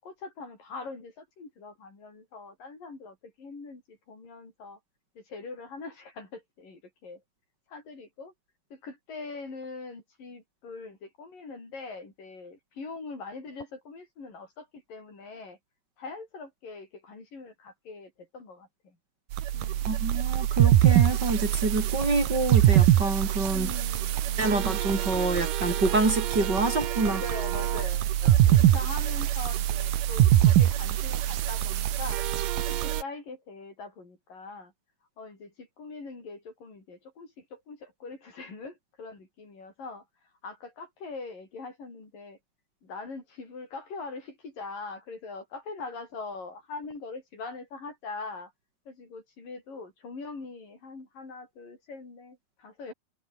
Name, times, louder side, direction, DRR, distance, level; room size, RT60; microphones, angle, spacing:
voice 1, 0.0-4.8 5.2-7.2 7.7-8.3 8.7-15.6 16.0-19.0 19.5-20.0 23.5-24.7 27.0-32.2 32.6-34.7 35.2-40.1 40.4-42.4 42.8-48.5 48.9-52.9, left 3 dB, 85° left, 9.4 m, -42 dB
sound 1, 19.3-33.0, right 12 dB, 80° right, 3.0 m, -24 dB
voice 2, 19.9-23.7 24.4-27.2, right 2 dB, 30° right, 5.1 m, -27 dB
omnidirectional pair, 3.8 m